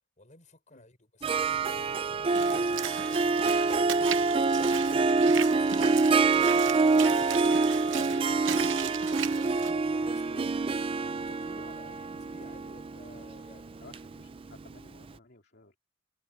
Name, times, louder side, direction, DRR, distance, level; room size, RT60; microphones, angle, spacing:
voice 1, 0.2-3.2 4.9-6.9 7.8-8.6 9.2-10.7 11.2-13.9, left 2 dB, 40° left, 6.3 m, -53 dB
Harp, 1.2-14.8, right 4 dB, 30° right, 0.4 m, -26 dB
Walk footsteps / Splash splatter, 2.3-9.7, right 9 dB, 75° right, 0.8 m, -38 dB
voice 2, 7.1-7.4 13.8-15.8, left 2 dB, 55° left, 2.8 m, -56 dB
head